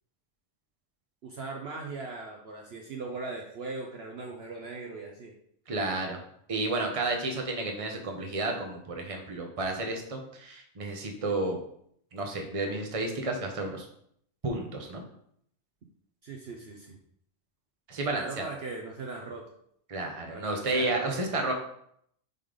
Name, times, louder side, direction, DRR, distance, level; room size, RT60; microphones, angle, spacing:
voice 1, 1.2-5.3 16.2-17.0 18.1-19.4 20.3-21.0, right 3 dB, 55° right, 1 dB, 0.9 m, -39 dB
voice 2, 5.7-6.2 6.5-11.6 12.1-13.8 14.4-15.0 17.9-18.5 19.9-21.5, right 2 dB, 30° right, 2 dB, 0.9 m, -31 dB
5.4 x 3.9 x 5.0 m, 0.69 s
omnidirectional pair, 1.4 m